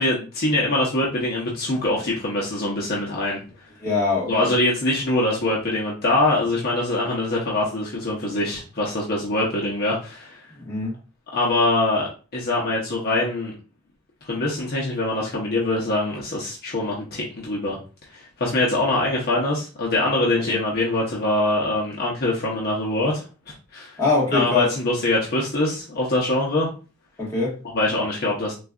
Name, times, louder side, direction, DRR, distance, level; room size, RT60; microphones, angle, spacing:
voice 1, 0.0-3.4 4.3-10.4 11.3-13.5 14.3-17.8 18.1-23.9 24.3-26.7 27.7-28.5, left 2 dB, 45° left, 0.8 m, -23 dB
voice 2, 3.8-4.5 10.6-11.0 20.4-20.5 24.0-24.7 27.2-27.6, left 3 dB, 15° left, 1.4 m, -23 dB
3.9 x 2.4 x 2.4 m
head